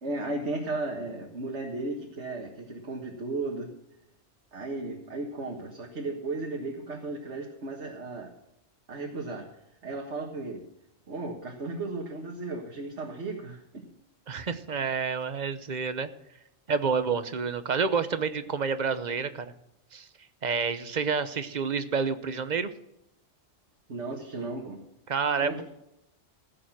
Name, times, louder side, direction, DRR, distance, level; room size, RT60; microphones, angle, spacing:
voice 1, 0.0-3.7 4.5-8.3 8.9-9.4 9.8-10.6 11.1-13.8 23.9-24.8 25.4-25.6, right 2 dB, 70° right, 0 dB, 1.9 m, -35 dB
voice 2, 14.3-16.1 16.7-19.5 19.9-20.1 20.4-22.7 25.1-25.6, right 5 dB, 40° right, 12 dB, 0.9 m, -29 dB
16.0 x 7.7 x 6.0 m, 0.86 s
omnidirectional pair, 1.2 m